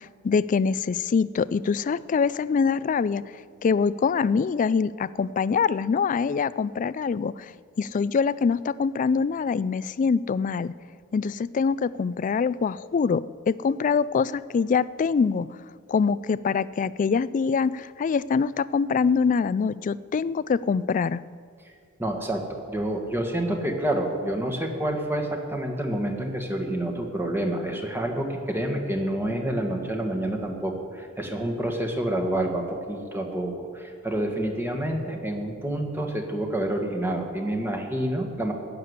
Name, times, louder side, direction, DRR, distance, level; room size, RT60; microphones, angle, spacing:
voice 1, 0.0-3.2 3.6-7.5 7.8-10.7 11.1-15.5 15.9-21.2, left 5 dB, 40° left, 18 dB, 0.3 m, -24 dB
voice 2, 22.0-22.4 22.7-38.5, right 1 dB, 10° right, 3 dB, 1.5 m, -28 dB
15.5 x 6.8 x 9.5 m, 2.2 s
head